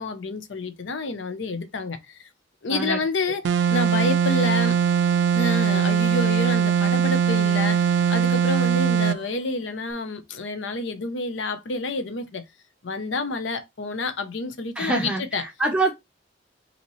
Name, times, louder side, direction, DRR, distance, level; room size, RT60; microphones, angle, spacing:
voice 1, 0.0-2.3 2.6-4.8 5.3-12.4 12.8-15.4, left 3 dB, 80° left, 0.7 m, -29 dB
voice 2, 2.7-3.0 14.8-15.9, right 2 dB, 5° right, 0.7 m, -25 dB
sound 1, 3.4-9.2, right 7 dB, 70° right, 0.4 m, -21 dB
5.4 x 2.8 x 3.0 m
head